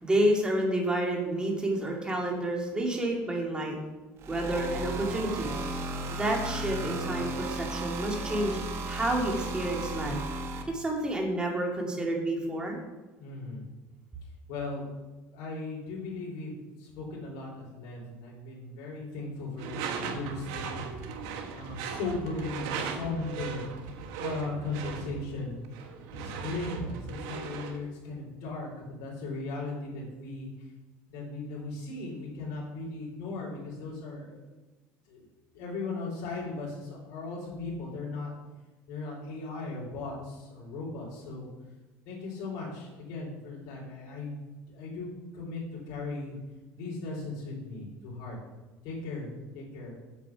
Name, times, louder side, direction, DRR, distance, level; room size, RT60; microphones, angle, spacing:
voice 1, 0.0-3.8 4.3-5.5 6.1-8.6 8.9-10.2 10.7-12.8, right 1 dB, 15° right, 0 dB, 2.5 m, -29 dB
sound 1, 4.2-10.6, right 2 dB, 45° right, 1.5 m, -35 dB
voice 2, 13.2-13.6 14.5-14.9 15.3-20.9 21.5-23.7 24.2-25.6 26.2-30.5 31.1-34.4 35.1-35.2 35.5-38.3 38.9-41.5 42.1-44.4 44.7-46.4 46.7-48.4 48.8-49.9, left 3 dB, 65° left, -5 dB, 3.8 m, -37 dB
Door / Screech, 19.6-27.8, right 6 dB, 75° right, 1.3 m, -38 dB
8.4 x 7.4 x 5.9 m, 1.2 s
cardioid pair, 120°, 6 cm